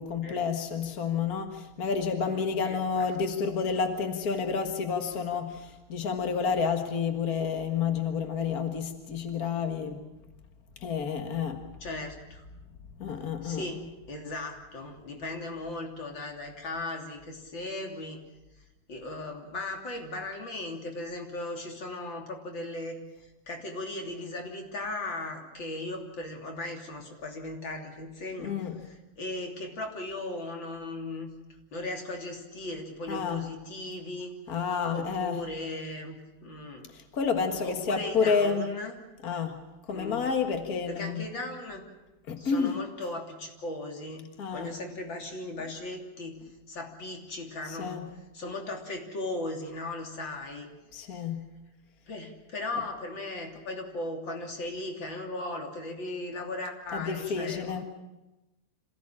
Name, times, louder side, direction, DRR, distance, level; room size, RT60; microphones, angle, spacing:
voice 1, 0.0-10.0 10.8-11.7 13.0-13.6 28.4-28.8 33.1-33.5 34.5-35.4 36.9-38.7 39.2-39.6 39.9-41.3 42.3-42.8 44.4-44.7 47.7-48.1 50.9-51.5 56.9-57.8, left 6 dB, 60° left, 6 dB, 0.9 m, -30 dB
voice 2, 2.2-3.0 11.8-12.4 13.4-13.8 14.1-18.2 18.9-31.3 31.7-34.3 34.9-36.9 37.6-38.9 39.9-40.2 40.9-41.8 42.4-46.4 46.7-48.0 48.3-50.7 51.1-51.2 52.1-57.8, left 2 dB, 30° left, 2 dB, 3.3 m, -37 dB
26.5 x 16.5 x 8.8 m, 1.0 s
omnidirectional pair, 4.4 m